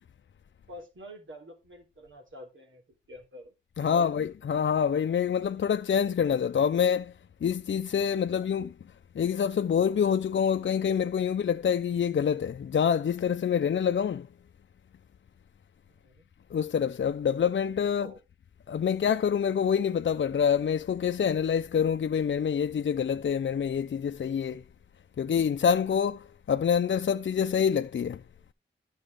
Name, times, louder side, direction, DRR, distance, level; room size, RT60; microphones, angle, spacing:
voice 1, 0.7-4.1 6.7-6.9 15.9-16.3 17.9-18.2, equal, 75° right, 3.7 m, -48 dB
voice 2, 3.8-7.1 7.4-8.7 9.2-14.3 16.5-18.1 18.7-24.6 25.2-28.2, left 7 dB, 70° left, 0.5 m, -26 dB
12.0 x 6.2 x 4.9 m
cardioid pair, 60°, 20 cm